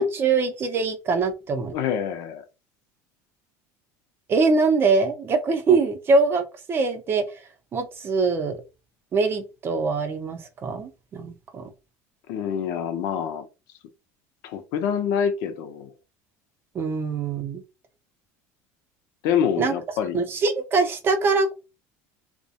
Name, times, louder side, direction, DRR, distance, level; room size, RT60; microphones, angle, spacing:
voice 1, 0.0-1.7 4.3-7.2 7.7-8.6 9.1-11.7 16.7-17.6 19.6-19.7 20.1-21.5, right 4 dB, 30° right, 0.6 m, -23 dB
voice 2, 1.7-2.4 12.3-13.5 14.4-15.9 19.2-20.2, left 8 dB, 70° left, 0.5 m, -26 dB
2.3 x 2.1 x 2.7 m
supercardioid pair, 130°, 7 cm